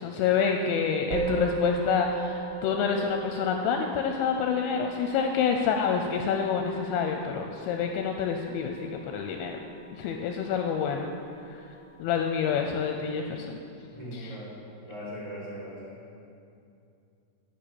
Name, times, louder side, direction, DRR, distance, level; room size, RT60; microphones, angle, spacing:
voice 1, 0.0-9.6 9.9-11.1 12.0-13.6 14.1-14.4, left 6 dB, 85° left, 3 dB, 2.7 m, -28 dB
Musical instrument, 1.1-10.6, right 3 dB, 70° right, 2.8 m, -37 dB
voice 2, 13.9-14.5 14.8-16.0, equal, 30° right, -10 dB, 3.2 m, -39 dB
10.0 x 6.7 x 8.6 m, 2.6 s
omnidirectional pair, 5.7 m